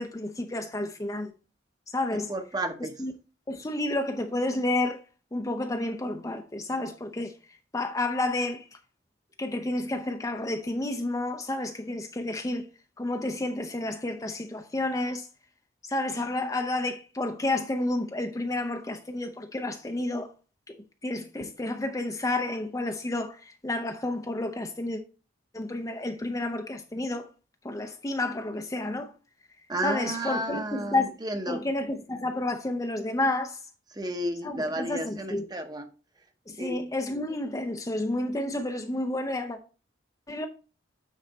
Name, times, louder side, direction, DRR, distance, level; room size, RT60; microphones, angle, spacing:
voice 1, 0.0-1.3 1.9-2.3 3.0-3.1 3.5-5.0 5.3-7.3 7.7-8.7 9.4-12.7 13.0-15.3 15.8-20.3 21.0-25.0 25.5-27.3 27.6-29.1 29.8-31.1 31.5-33.6 34.4-35.5 36.5-39.6 40.3-40.5, left 2 dB, 15° left, 0.5 m, -30 dB
voice 2, 2.3-3.0 29.7-31.6 33.9-35.9 36.6-36.8, right 1 dB, 20° right, 0.8 m, -32 dB
9.2 x 4.0 x 4.1 m
head